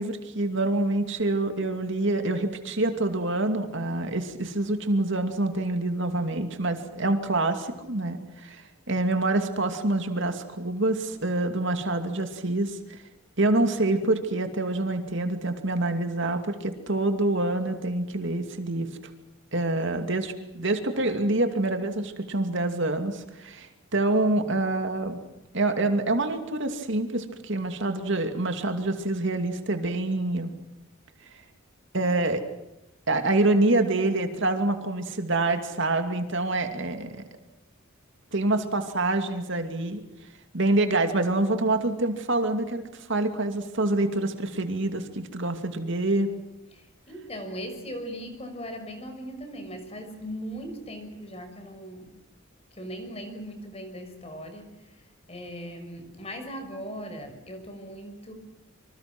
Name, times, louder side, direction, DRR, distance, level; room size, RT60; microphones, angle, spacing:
voice 1, 0.0-13.0 13.4-18.9 19.5-25.2 25.5-30.5 31.9-32.4 33.1-37.2 38.3-40.0 40.5-46.3, right 2 dB, 60° right, 7 dB, 2.6 m, -26 dB
voice 2, 46.7-52.1 52.7-58.3, equal, 30° left, 6 dB, 6.1 m, -39 dB
26.5 x 26.0 x 6.2 m, 0.91 s
head